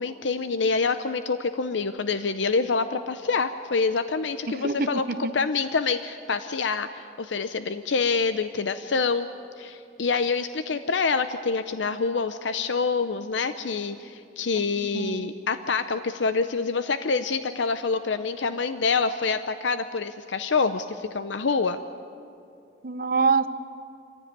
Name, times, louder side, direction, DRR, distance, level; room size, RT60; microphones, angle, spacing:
voice 1, 0.0-5.0 5.3-9.3 9.6-21.8, left 4 dB, 90° left, 10 dB, 0.7 m, -26 dB
voice 2, 4.5-5.3 14.9-15.3 22.8-23.5, right 4 dB, 50° right, 12 dB, 0.7 m, -25 dB
25.5 x 15.5 x 9.5 m, 2.5 s
head